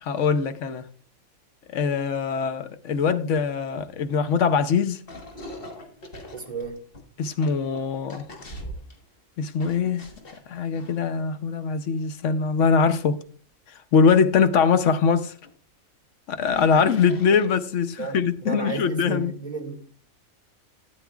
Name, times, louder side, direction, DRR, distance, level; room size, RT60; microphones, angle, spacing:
voice 1, 0.0-0.9 1.7-5.0 7.2-8.2 9.4-10.1 10.5-13.2 13.9-15.3 16.3-19.3, left 6 dB, 65° left, 1.0 m, -22 dB
sound 1, 3.7-4.5 5.1-9.1 9.6-11.5 11.9-12.0 14.4-14.5 14.9-15.0 15.4-15.5 16.3-17.9, left 1 dB, 40° left, 1.6 m, -42 dB
voice 2, 6.3-6.8 18.0-19.9, right 4 dB, 25° right, 1.9 m, -33 dB
13.0 x 9.5 x 2.4 m
omnidirectional pair, 1.5 m